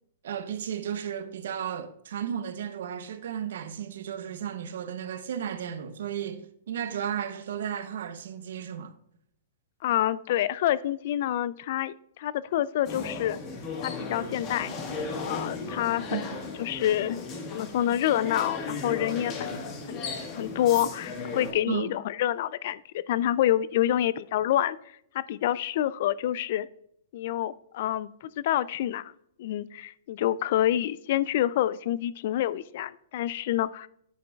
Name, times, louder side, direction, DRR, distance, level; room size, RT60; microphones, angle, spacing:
voice 1, 0.2-8.9 16.1-16.4 21.7-22.0, right 9 dB, 70° right, 0.7 m, -34 dB
voice 2, 9.8-13.4 13.8-14.7 15.3-16.3 16.6-17.2 17.5-19.6 19.9-20.0 20.3-24.8 25.1-26.7 27.1-29.1 29.4-33.9, left 12 dB, 55° left, 0.3 m, -27 dB
sound 1, 12.8-21.5, left 4 dB, 30° left, 1.4 m, -35 dB
9.7 x 7.7 x 2.3 m
hypercardioid pair, 155°, 0 cm